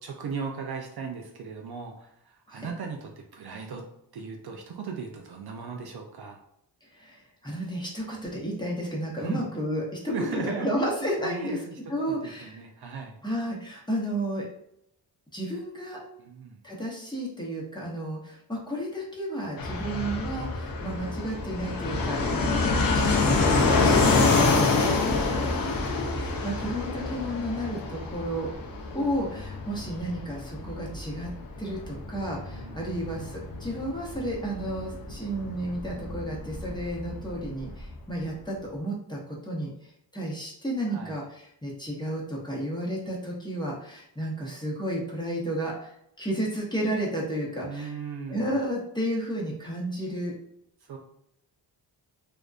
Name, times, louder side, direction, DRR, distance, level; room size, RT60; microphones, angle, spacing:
voice 1, 0.0-3.8 4.1-6.4 9.2-9.5 10.1-10.7 11.2-11.8 12.1-13.2 16.2-16.6 32.5-32.8 40.9-41.2 47.6-48.6 50.8-51.0, right 5 dB, 55° right, 1 dB, 0.5 m, -37 dB
voice 2, 7.0-11.6 11.9-12.5 13.2-14.5 15.3-16.0 16.6-22.7 22.9-28.5 28.9-31.3 31.6-39.7 40.1-45.9 46.2-47.9 48.3-50.3, right 1 dB, 10° left, -4 dB, 0.7 m, -32 dB
Fixed-wing aircraft airplane, 19.6-37.9, left 3 dB, 50° left, 0.6 m, -27 dB
2.5 x 2.1 x 2.3 m, 0.75 s
cardioid pair, 65°, 47 cm